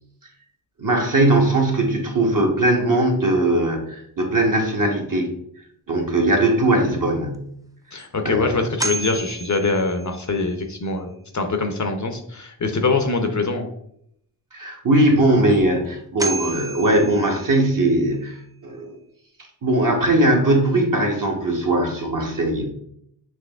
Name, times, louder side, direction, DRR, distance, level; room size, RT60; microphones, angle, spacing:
voice 1, 0.8-5.3 5.9-7.5 8.2-8.7 14.5-18.9 19.6-22.6, right 1 dB, 45° right, 0 dB, 1.1 m, -20 dB
sound 1, 7.3-7.4 8.0-8.1 8.8-10.4 15.5-15.6 16.2-17.8, right 2 dB, 10° right, 0.4 m, -31 dB
voice 2, 7.9-13.7, left 3 dB, 40° left, 5 dB, 0.6 m, -23 dB
6.0 x 2.9 x 2.3 m, 0.71 s
cardioid pair, 45°, 44 cm